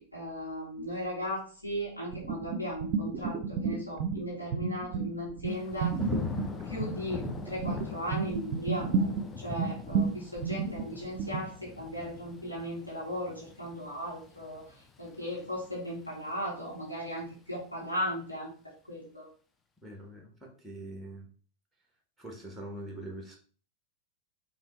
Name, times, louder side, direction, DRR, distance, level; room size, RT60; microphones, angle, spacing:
voice 1, 0.0-6.0 6.6-9.1 9.4-18.5 18.9-19.3, equal, 85° left, -6 dB, 1.6 m, -37 dB
sound 1, 2.1-4.2 4.5-11.4, right 5 dB, 45° right, 0.5 m, -32 dB
Thunder / Rain, 5.5-16.4 16.8-17.3, left 6 dB, 20° left, 0.5 m, -43 dB
voice 2, 19.8-21.3 22.2-23.4, right 1 dB, 5° right, 1 dB, 1.1 m, -43 dB
5.3 x 2.8 x 3.1 m, 0.41 s
figure-of-eight pair, 90°, 0 cm